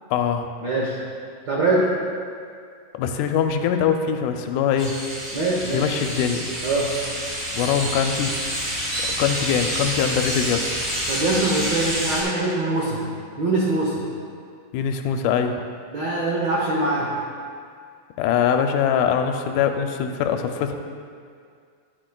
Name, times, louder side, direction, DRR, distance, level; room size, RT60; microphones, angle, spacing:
voice 1, 0.1-0.5 3.0-4.9 5.7-6.4 7.5-8.4 9.0-10.7 14.7-15.6 18.2-20.7, left 8 dB, 85° left, 6 dB, 2.0 m, -22 dB
voice 2, 0.6-1.0 1.5-1.8 5.3-5.8 6.6-6.9 11.1-13.0 13.4-14.0 15.9-17.1, right 2 dB, 80° right, -5 dB, 1.0 m, -23 dB
sound 1, 4.8-12.2, equal, 30° right, 1.9 m, -28 dB
10.0 x 9.7 x 2.3 m, 2.2 s
omnidirectional pair, 3.6 m